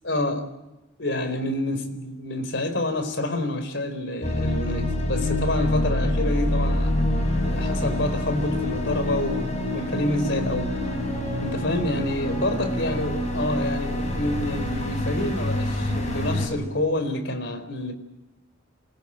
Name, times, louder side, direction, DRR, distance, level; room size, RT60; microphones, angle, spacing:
voice 1, 0.0-0.5 1.0-6.9 7.4-10.8 11.4-17.9, left 1 dB, 65° left, 4.6 m, -28 dB
sound 1, 4.2-16.5, left 1 dB, 35° left, 7.5 m, -26 dB
27.0 x 22.0 x 9.0 m
head